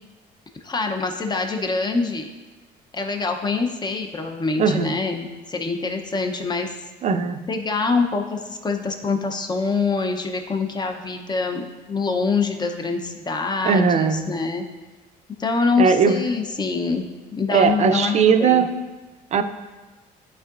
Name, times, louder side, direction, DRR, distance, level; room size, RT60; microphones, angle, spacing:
voice 1, 0.6-2.3 2.9-6.7 7.5-14.6 15.4-17.1 17.3-18.7, left 4 dB, 25° left, 4 dB, 0.8 m, -25 dB
voice 2, 4.6-4.9 7.0-7.4 13.6-14.4 15.8-16.2 17.5-18.7 19.3-19.4, right 6 dB, 40° right, 9 dB, 0.5 m, -18 dB
11.0 x 4.6 x 2.5 m, 1.2 s
cardioid pair, 110°, 17 cm